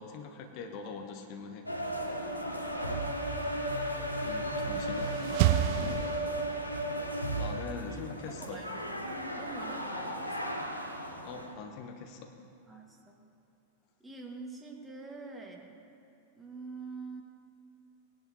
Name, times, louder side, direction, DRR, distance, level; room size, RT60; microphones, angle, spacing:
voice 1, 0.0-1.7 4.2-5.1 7.3-8.6 11.2-12.4, left 5 dB, 45° left, 4 dB, 1.0 m, -43 dB
sound 1, 1.7-11.5, right 1 dB, 85° left, 1.1 m, -35 dB
voice 2, 2.3-3.0 3.3-3.8 5.7-6.1 7.8-8.7 9.4-10.7 12.7-13.2 14.0-15.8 16.4-17.2, right 3 dB, 10° right, 0 dB, 1.7 m, -46 dB
sound 2, 4.5-6.8, right 14 dB, 45° right, 0.3 m, -30 dB
19.0 x 10.5 x 2.9 m, 2.7 s
figure-of-eight pair, 90°, 0 cm